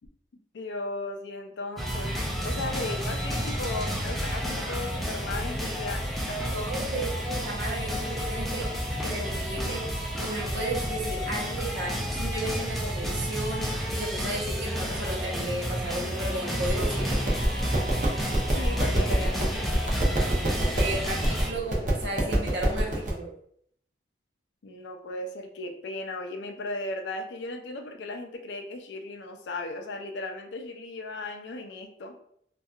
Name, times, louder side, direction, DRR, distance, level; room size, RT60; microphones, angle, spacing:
voice 1, 0.5-2.2 2.4-6.5 18.5-19.7 24.6-32.2, left 2 dB, 75° left, 5 dB, 0.4 m, -36 dB
sound 1, 1.8-21.5, equal, ahead, 0.3 m, -31 dB
voice 2, 6.5-8.7 9.0-13.6 13.9-17.2 20.7-23.3, right 1 dB, 85° right, -2 dB, 0.8 m, -34 dB
sound 2, 16.6-23.1, right 1 dB, 45° right, 0.6 m, -28 dB
2.7 x 2.3 x 2.3 m, 0.67 s
head